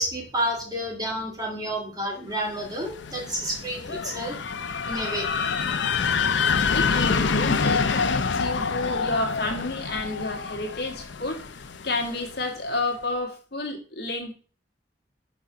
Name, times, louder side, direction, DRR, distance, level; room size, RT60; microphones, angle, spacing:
voice 1, 0.0-4.4 4.9-5.2, equal, 20° right, 0 dB, 1.7 m, -30 dB
sound 1, 2.6-12.4, left 5 dB, 80° left, 0.6 m, -27 dB
voice 2, 6.7-11.4 11.8-14.3, left 2 dB, 60° left, 2 dB, 1.7 m, -30 dB
6.2 x 4.0 x 5.6 m, 0.40 s
head